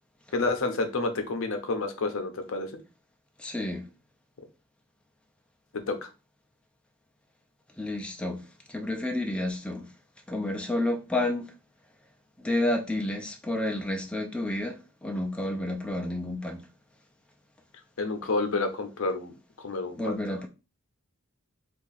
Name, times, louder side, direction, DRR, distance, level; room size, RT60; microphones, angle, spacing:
voice 1, 0.3-2.7 5.7-6.1 18.0-19.3 19.6-20.1, left 3 dB, 65° left, 0.6 m, -29 dB
voice 2, 3.4-3.9 7.8-9.9 10.3-11.5 12.4-16.6 20.0-20.5, left 1 dB, 5° left, 0.4 m, -30 dB
2.8 x 2.4 x 3.9 m
head